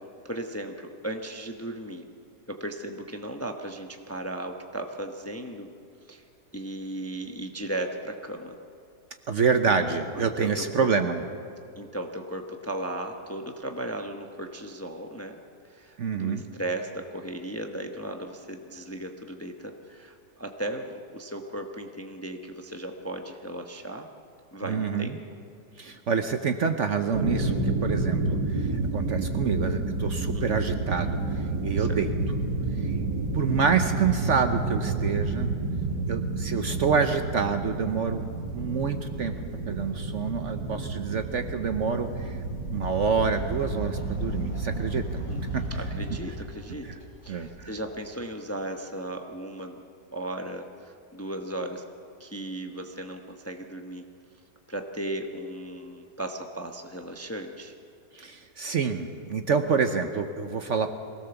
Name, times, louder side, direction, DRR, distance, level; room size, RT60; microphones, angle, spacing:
voice 1, 0.2-2.1 2.5-5.7 6.1-6.2 6.5-8.6 10.1-10.9 11.8-15.4 15.6-24.1 24.5-25.2 30.3-30.7 31.8-32.0 45.3-49.8 50.1-51.8 52.2-54.1 54.7-57.7, right 1 dB, 10° left, 4 dB, 0.8 m, -36 dB
voice 2, 9.3-11.2 16.0-16.4 24.7-25.1 25.8-28.7 28.9-31.2 31.6-32.1 32.8-32.9 33.3-35.5 36.1-38.3 38.5-39.3 39.7-42.4 42.7-45.2 45.5-45.6 46.8-46.9 47.3-47.7 58.1-60.9, right 6 dB, 55° right, 7 dB, 1.0 m, -27 dB
sound 1, 27.1-46.1, right 3 dB, 90° right, 2.5 m, -30 dB
Fowl, 42.8-48.1, right 1 dB, 55° left, 3.1 m, -37 dB
23.0 x 17.0 x 7.0 m, 2.5 s
omnidirectional pair, 1.8 m